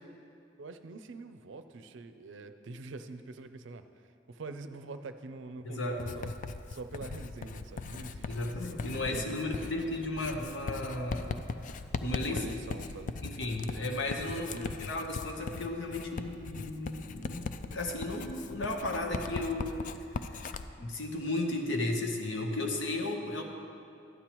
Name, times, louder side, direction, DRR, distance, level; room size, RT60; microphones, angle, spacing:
voice 1, 0.6-3.9 4.3-6.3 6.7-10.0 12.3-13.2 14.3-14.7, right 3 dB, 85° right, 10 dB, 0.5 m, -45 dB
voice 2, 5.6-6.0 8.3-11.4 11.7-12.5 13.2-20.5 20.8-23.4, left 2 dB, 80° left, 2 dB, 1.0 m, -35 dB
Writing, 6.0-20.7, left 4 dB, 45° left, 0.3 m, -39 dB
12.5 x 9.9 x 3.0 m, 2.7 s
head